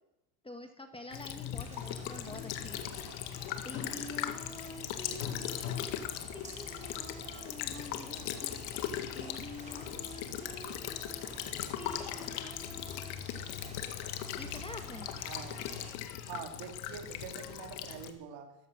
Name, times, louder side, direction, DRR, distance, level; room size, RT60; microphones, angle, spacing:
voice 1, 0.4-2.9 3.6-6.0 6.3-8.6 9.1-11.3 11.8-13.2 14.4-15.1, left 2 dB, 10° left, 6 dB, 1.7 m, -47 dB
Child speech kid speaking / Bird vocalization bird call bird song / Stream, 1.1-18.1, left 11 dB, 80° left, 1.9 m, -39 dB
sound 1, 1.5-15.9, right 2 dB, 15° right, 4.6 m, -50 dB
voice 2, 15.2-15.7 16.3-18.5, right 7 dB, 65° right, 3 dB, 3.1 m, -45 dB
15.5 x 14.5 x 6.4 m, 0.87 s
cardioid pair, 115°, 48 cm